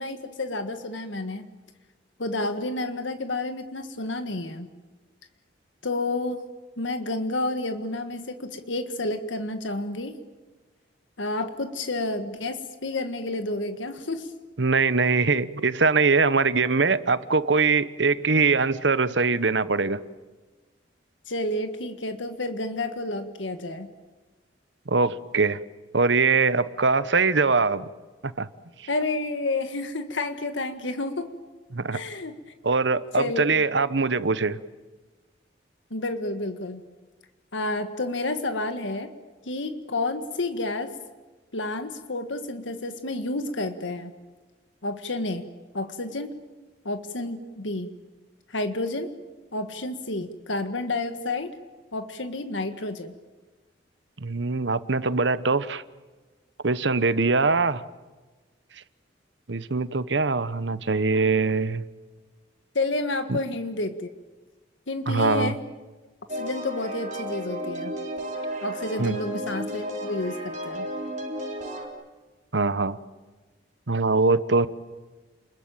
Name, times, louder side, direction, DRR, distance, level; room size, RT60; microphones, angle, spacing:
voice 1, 0.0-1.5 2.2-4.7 5.8-6.4 6.8-10.2 11.2-14.3 21.3-23.9 28.9-31.3 31.9-32.4 33.1-33.6 35.9-36.8 37.5-39.1 39.4-40.9 41.5-44.1 44.8-45.4 45.7-46.3 46.8-47.9 48.5-49.1 49.5-51.6 51.9-53.1 62.7-64.1 64.9-65.6 66.3-68.0 68.6-70.9, left 2 dB, 85° left, 1.7 m, -30 dB
voice 2, 14.6-20.0 24.9-25.6 25.9-27.9 28.2-28.5 31.7-32.0 32.6-34.6 54.2-55.8 56.6-57.8 59.5-61.8 63.3-63.4 65.1-65.5 69.0-69.2 72.5-73.0 73.9-74.7, right 4 dB, 70° right, 1.1 m, -22 dB
sound 1, 66.3-71.9, equal, 40° right, 4.2 m, -33 dB
29.5 x 21.5 x 9.0 m
head